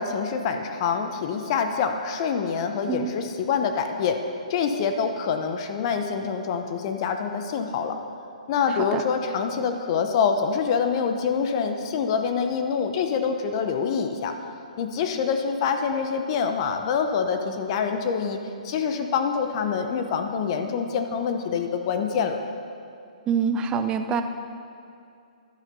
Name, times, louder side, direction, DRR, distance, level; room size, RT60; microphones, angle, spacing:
voice 1, 0.0-4.2 4.5-8.0 8.5-14.3 14.8-22.4, left 6 dB, 40° left, 6 dB, 0.9 m, -26 dB
voice 2, 23.3-24.2, right 6 dB, 20° right, 8 dB, 0.6 m, -25 dB
11.5 x 9.2 x 5.5 m, 2.5 s
hypercardioid pair, 140°, 4 cm